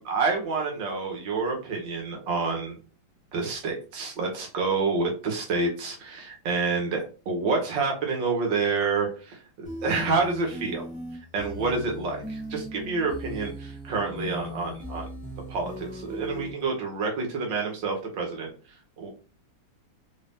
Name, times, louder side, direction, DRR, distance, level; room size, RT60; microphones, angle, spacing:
voice 1, 0.0-2.8 3.3-10.8 11.3-15.0 15.5-18.5 19.0-19.1, right 4 dB, 75° right, 0 dB, 2.0 m, -28 dB
sound 1, 9.6-16.5, equal, 5° right, 0.6 m, -38 dB
4.6 x 2.7 x 3.6 m, 0.35 s
omnidirectional pair, 2.1 m